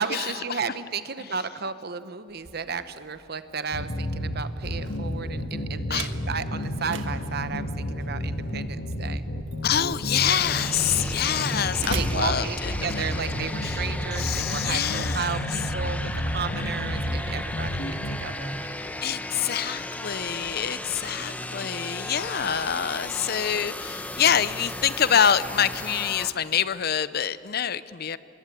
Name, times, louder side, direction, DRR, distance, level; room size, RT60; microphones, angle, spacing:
voice 1, 0.0-9.2 10.8-11.2 11.9-18.6 20.3-20.7, right 5 dB, 55° right, 12 dB, 1.0 m, -34 dB
Slam, 2.3-13.2, right 3 dB, 75° right, 1.6 m, -41 dB
sound 1, 3.7-18.2, equal, 75° left, 1.9 m, -31 dB
voice 2, 9.6-12.7 13.6-13.8 14.2-15.3 16.6-17.2 19.0-28.2, left 8 dB, 50° left, 16 dB, 0.6 m, -26 dB
sound 2, 10.2-26.3, left 1 dB, 10° left, 1.0 m, -36 dB
25.5 x 22.0 x 8.4 m, 2.9 s
head